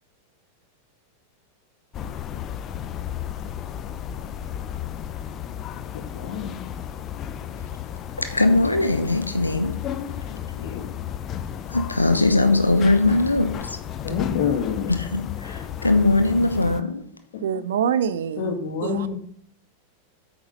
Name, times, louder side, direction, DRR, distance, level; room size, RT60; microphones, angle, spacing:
sound 1, 1.9-16.8, left 10 dB, 30° left, 0.6 m, -33 dB
voice 1, 5.9-6.7 10.3-10.9 14.0-14.9 18.4-19.2, left 7 dB, 50° left, 5 dB, 1.7 m, -28 dB
voice 2, 8.2-9.7 11.7-13.8 15.0-17.0, left 2 dB, 85° left, 8 dB, 0.9 m, -20 dB
voice 3, 17.4-18.5 18.8-19.2, right 8 dB, 60° right, 15 dB, 0.6 m, -25 dB
8.8 x 6.0 x 5.5 m, 0.64 s
figure-of-eight pair, 90°, 0 cm